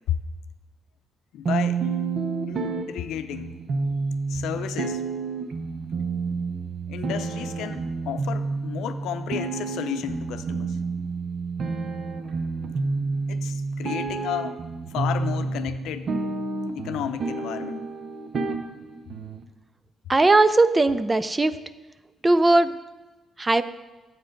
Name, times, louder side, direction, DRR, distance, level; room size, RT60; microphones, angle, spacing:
voice 1, 1.3-1.8 2.5-3.6 4.3-5.0 6.9-10.8 13.3-14.6 14.9-16.2 16.7-17.9, left 10 dB, 85° left, 9 dB, 0.6 m, -32 dB
sound 1, 1.5-19.4, right 4 dB, 55° right, 0.8 m, -29 dB
voice 2, 20.1-21.6 22.2-22.7 23.4-23.6, right 2 dB, 20° right, 14 dB, 0.4 m, -18 dB
7.8 x 7.7 x 5.2 m, 1.2 s
cardioid pair, 90°, 0 cm